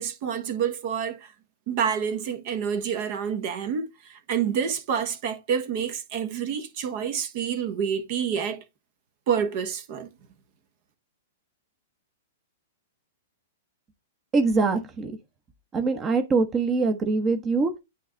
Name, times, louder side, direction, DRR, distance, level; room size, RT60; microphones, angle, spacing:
voice 1, 0.0-1.3 1.7-8.6 9.3-10.1, right 7 dB, 50° right, 1.3 m, -28 dB
voice 2, 14.3-15.2 15.7-17.8, right 3 dB, 25° right, 1.0 m, -23 dB
9.1 x 3.2 x 3.9 m
hypercardioid pair, 115°, 0 cm